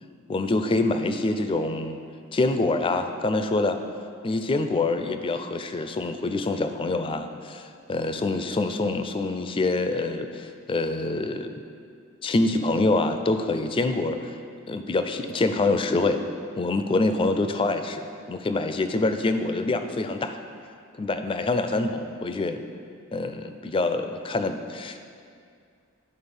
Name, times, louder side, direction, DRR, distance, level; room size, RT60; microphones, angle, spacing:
voice 1, 0.3-2.0 2.3-3.8 4.2-11.5 12.2-14.3 14.7-16.2 16.6-20.4 21.0-22.6 23.1-25.0, left 2 dB, 25° left, 8 dB, 0.4 m, -25 dB
10.5 x 4.1 x 5.3 m, 2.3 s
head